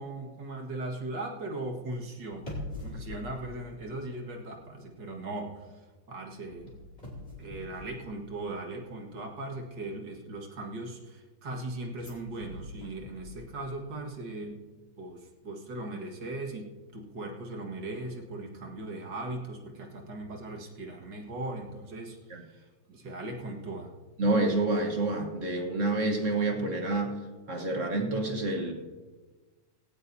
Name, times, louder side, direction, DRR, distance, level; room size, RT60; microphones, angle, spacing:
voice 1, 0.0-2.5 2.8-5.8 6.1-6.8 7.4-14.6 15.0-16.7 16.9-23.9, right 2 dB, 65° right, 1 dB, 2.3 m, -38 dB
sound 1, 2.3-4.6 4.9-5.2 6.5-8.7 11.9-13.8 14.1-14.2, left 1 dB, 20° left, 3.2 m, -44 dB
voice 2, 24.2-27.1 27.5-28.7, right 2 dB, 45° right, 3 dB, 1.5 m, -28 dB
17.5 x 17.0 x 2.7 m, 1.3 s
omnidirectional pair, 2.1 m